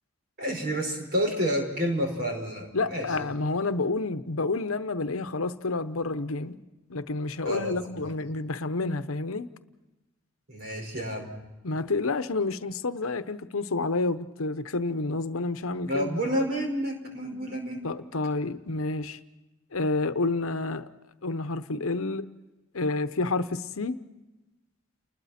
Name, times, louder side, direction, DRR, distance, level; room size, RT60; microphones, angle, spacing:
voice 1, 0.4-3.3 7.4-8.1 10.5-11.3 15.8-17.9, equal, 45° right, 5.2 m, -30 dB
voice 2, 2.7-6.6 6.9-9.5 11.6-16.2 17.8-19.2 19.7-20.9 21.2-22.3 22.7-24.0, left 3 dB, 85° left, 0.9 m, -29 dB
30.0 x 20.5 x 4.3 m
head